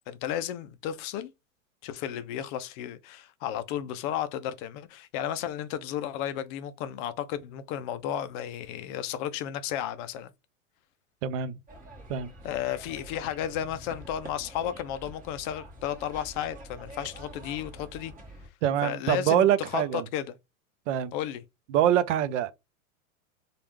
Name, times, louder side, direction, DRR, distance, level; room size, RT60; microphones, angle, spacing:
voice 1, 0.1-1.3 1.8-10.3 12.4-18.1 18.8-20.3 21.1-21.4, left 10 dB, 40° left, 0.4 m, -33 dB
voice 2, 11.2-11.6 12.1-12.3 18.6-20.0 20.9-21.1 21.7-22.5, right 10 dB, 60° right, 0.6 m, -24 dB
sound 1, 11.7-18.5, right 1 dB, 20° right, 1.5 m, -46 dB
3.2 x 2.4 x 3.0 m
hypercardioid pair, 110°, 41 cm